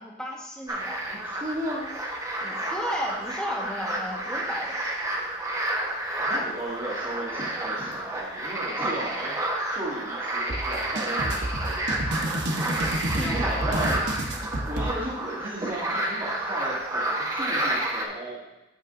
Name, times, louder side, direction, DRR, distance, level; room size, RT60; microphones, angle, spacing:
voice 1, 0.0-1.3 2.4-4.8 12.5-14.1, equal, 5° left, -3 dB, 1.4 m, -35 dB
sound 1, 0.7-18.1, right 1 dB, 20° right, 1.2 m, -30 dB
voice 2, 1.1-1.9 6.2-9.4 9.7-11.8 13.1-14.1 14.6-18.4, right 1 dB, 35° right, -12 dB, 2.7 m, -34 dB
sound 2, 10.5-14.9, right 1 dB, 65° right, 0.9 m, -29 dB
14.5 x 5.2 x 2.6 m, 0.95 s
head